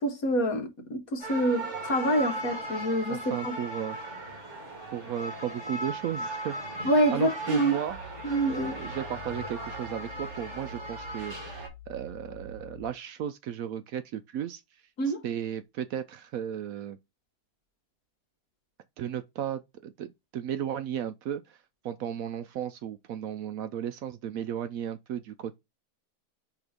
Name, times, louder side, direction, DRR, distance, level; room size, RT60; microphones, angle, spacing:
voice 1, 0.0-3.5 6.8-7.8 8.2-8.8 15.0-15.2, right 1 dB, 60° left, 1.7 m, -26 dB
sound 1, 1.2-11.7, right 1 dB, 45° right, 2.6 m, -37 dB
voice 2, 3.1-4.0 4.9-8.0 8.5-11.5 11.9-14.6 15.2-17.0 19.0-21.4 21.8-25.6, right 10 dB, 70° right, 0.9 m, -35 dB
sound 2, 7.9-12.9, left 1 dB, 10° right, 1.4 m, -47 dB
5.0 x 3.7 x 5.0 m
omnidirectional pair, 1.7 m